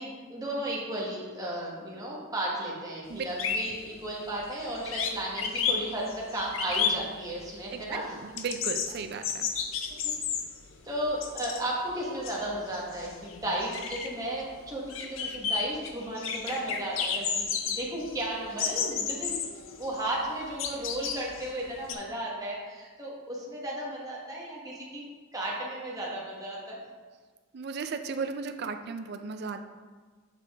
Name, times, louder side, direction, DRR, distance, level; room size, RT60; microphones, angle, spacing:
voice 1, 0.0-8.2 10.0-10.1 10.8-19.3 19.8-25.0 25.3-26.8, right 1 dB, 15° right, -4 dB, 1.0 m, -34 dB
sound 1, 3.1-3.2 3.4-4.6 4.8-7.6 7.9-11.7 12.0-21.9, left 6 dB, 65° left, 0.6 m, -32 dB
voice 2, 8.2-9.5 27.5-29.6, right 5 dB, 50° right, 8 dB, 0.4 m, -35 dB
6.6 x 5.0 x 3.4 m, 1.5 s
head